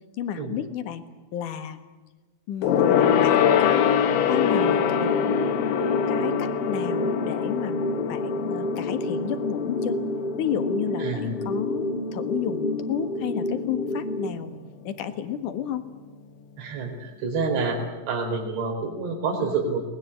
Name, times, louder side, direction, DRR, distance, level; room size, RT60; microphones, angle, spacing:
voice 1, 0.2-1.0 1.3-1.8 2.5-5.5 6.1-7.8 8.1-10.0 10.4-14.6 14.8-15.9, left 9 dB, 60° left, 9 dB, 2.5 m, -32 dB
Gong, 2.6-12.4 12.7-13.0 13.3-13.4, left 8 dB, 80° left, 4.0 m, -24 dB
sound 1, 4.3-14.3, left 2 dB, 30° left, 0.9 m, -29 dB
voice 2, 16.6-17.8 18.1-19.9, right 4 dB, 80° right, 2 dB, 6.5 m, -28 dB
22.5 x 20.5 x 9.8 m, 1.2 s
omnidirectional pair, 5.2 m